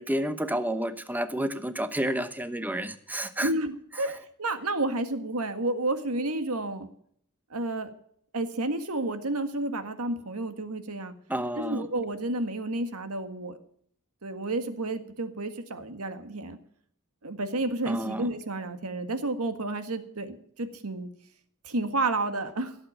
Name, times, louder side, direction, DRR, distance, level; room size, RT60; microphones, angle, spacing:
voice 1, 0.0-3.5 11.3-11.9 17.9-18.3, right 1 dB, 10° right, 11 dB, 1.0 m, -30 dB
voice 2, 3.4-6.9 7.5-7.9 8.3-11.1 11.6-13.6 14.2-16.6 17.2-21.1 21.6-22.8, right 2 dB, 75° right, 9 dB, 1.8 m, -31 dB
16.5 x 8.1 x 8.9 m, 0.65 s
head